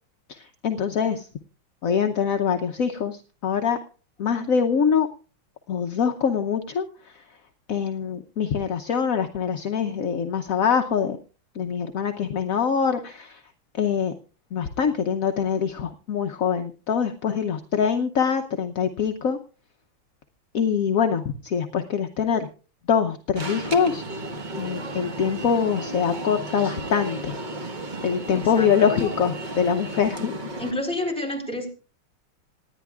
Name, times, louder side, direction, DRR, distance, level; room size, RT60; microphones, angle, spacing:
voice 1, 0.3-1.3 1.8-3.8 4.2-5.1 5.7-7.1 7.7-11.2 11.5-13.4 13.8-14.1 14.5-19.4 20.5-22.5 22.9-24.0 24.6-27.3 28.0-30.4, left 7 dB, 60° left, 5 dB, 0.9 m, -24 dB
Alarm, 23.4-30.7, right 1 dB, 25° right, 1.2 m, -33 dB
voice 2, 28.3-28.9 30.6-31.7, left 1 dB, 5° left, 0 dB, 4.1 m, -29 dB
26.5 x 10.0 x 2.4 m, 0.37 s
omnidirectional pair, 2.2 m